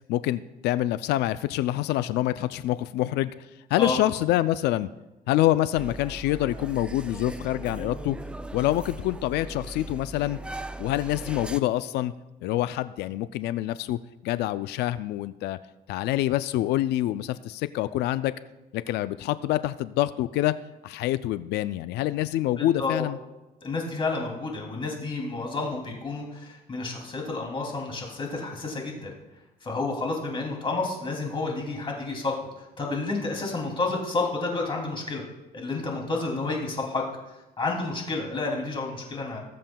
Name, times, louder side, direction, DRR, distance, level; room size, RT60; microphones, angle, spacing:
voice 1, 0.1-3.3 3.7-4.9 5.3-8.2 8.5-10.4 10.8-12.1 12.4-15.6 15.9-18.3 18.7-20.5 20.8-23.2, left 14 dB, 80° left, 14 dB, 0.4 m, -26 dB
sound 1, 5.8-11.6, right 2 dB, 5° right, 0.3 m, -39 dB
voice 2, 22.6-23.1 23.6-29.1 29.6-35.2 35.5-37.0 37.6-39.4, left 3 dB, 30° left, -1 dB, 2.7 m, -30 dB
19.5 x 7.5 x 2.3 m, 1.0 s
cardioid pair, 110°, 17 cm